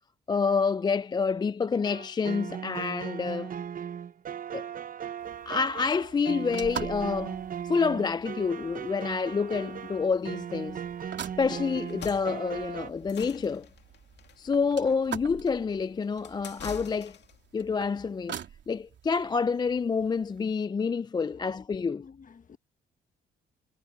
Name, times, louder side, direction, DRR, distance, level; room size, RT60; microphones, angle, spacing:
voice 1, 0.3-3.5 4.5-4.7 5.5-7.4 7.6-13.7 14.4-17.2 17.5-18.4 18.7-22.0, left 5 dB, 20° left, 0.3 m, -28 dB
sound 1, 1.8-12.9, right 8 dB, 45° right, 0.8 m, -37 dB
sound 2, 5.2-20.5, right 9 dB, 65° right, 3.1 m, -45 dB
sound 3, 11.8-17.5, left 8 dB, 60° left, 2.4 m, -46 dB
voice 2, 21.9-22.6, left 6 dB, 40° left, 1.5 m, -51 dB
cardioid pair, 90°, 20 cm